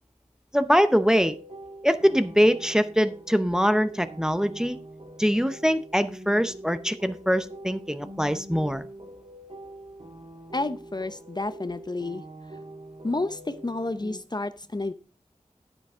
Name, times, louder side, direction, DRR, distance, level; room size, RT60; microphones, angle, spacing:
voice 1, 0.5-1.4 1.8-4.8 5.2-8.8, equal, 5° right, 12 dB, 0.7 m, -23 dB
sound 1, 0.9-14.2, right 1 dB, 50° right, 1.8 m, -44 dB
voice 2, 10.5-12.2 13.0-14.9, left 2 dB, 35° left, 12 dB, 0.6 m, -30 dB
10.0 x 9.2 x 3.7 m, 0.35 s
wide cardioid pair, 55°, 12 cm